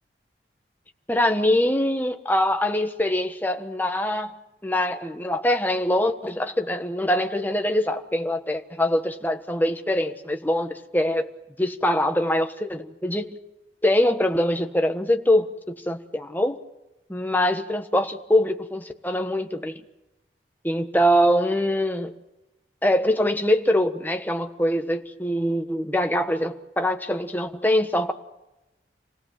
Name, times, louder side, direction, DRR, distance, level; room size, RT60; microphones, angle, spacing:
voice 1, 1.1-4.3 4.6-11.3 11.6-13.3 13.8-16.6 17.1-19.8 20.6-22.1 22.8-28.1, left 1 dB, 10° left, 5 dB, 1.4 m, -23 dB
27.5 x 18.0 x 7.7 m, 0.98 s
head